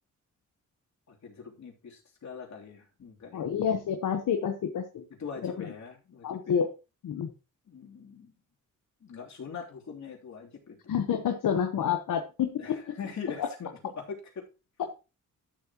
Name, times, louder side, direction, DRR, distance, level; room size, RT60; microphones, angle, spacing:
voice 1, 1.1-3.4 5.2-6.6 7.7-8.3 9.0-10.9 12.6-14.5, left 6 dB, 60° left, -1 dB, 3.2 m, -42 dB
voice 2, 3.3-5.0 5.4-5.7 6.2-6.7 7.0-7.3 10.9-12.8 13.4-13.5 14.8-14.9, left 8 dB, 75° left, 7 dB, 1.1 m, -29 dB
13.0 x 7.4 x 3.0 m, 0.30 s
cardioid pair, 80°, 32 cm